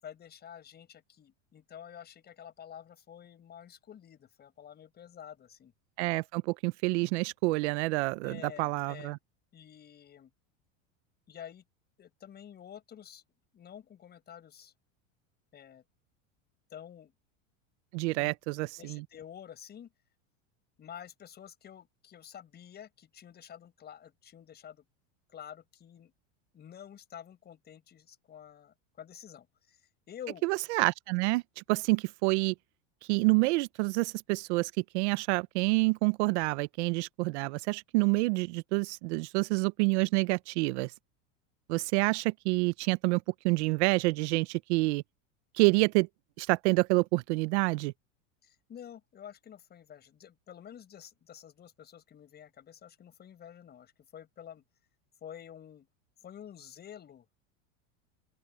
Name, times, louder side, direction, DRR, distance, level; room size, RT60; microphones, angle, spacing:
voice 1, 0.0-5.7 8.2-9.2 9.5-10.3 11.3-11.6 12.0-13.2 13.5-14.7 15.5-15.8 16.7-17.1 18.1-18.3 18.6-19.9 20.8-24.8 25.3-26.1 26.5-29.8 30.1-30.4 48.4-54.6 55.2-55.9 56.2-57.3, left 9 dB, 25° left, 6.5 m, -49 dB
voice 2, 6.0-9.2 17.9-19.0 30.4-31.4 31.7-32.5 33.1-40.9 41.7-45.0 45.6-46.1 46.4-47.9, right 25 dB, 60° right, 0.8 m, -28 dB
open air
supercardioid pair, 145°, 38 cm